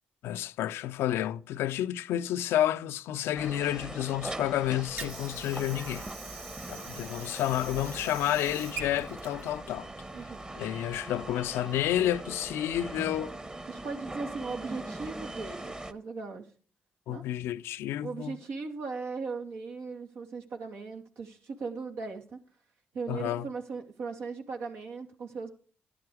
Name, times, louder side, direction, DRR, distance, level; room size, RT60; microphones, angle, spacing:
voice 1, 0.2-6.1 6.7-9.9 10.6-13.3 17.1-18.3 23.1-23.5, left 12 dB, 85° left, 0.5 m, -30 dB
sound 1, 3.3-15.9, right 2 dB, 20° right, 1.3 m, -41 dB
Water / Sink (filling or washing), 4.5-10.5, right 4 dB, 60° right, 3.2 m, -45 dB
voice 2, 10.1-10.4 13.7-16.5 17.1-17.2 18.0-22.4 22.9-25.5, right 4 dB, 80° right, 2.7 m, -38 dB
12.0 x 10.5 x 4.9 m
supercardioid pair, 60°, 4 cm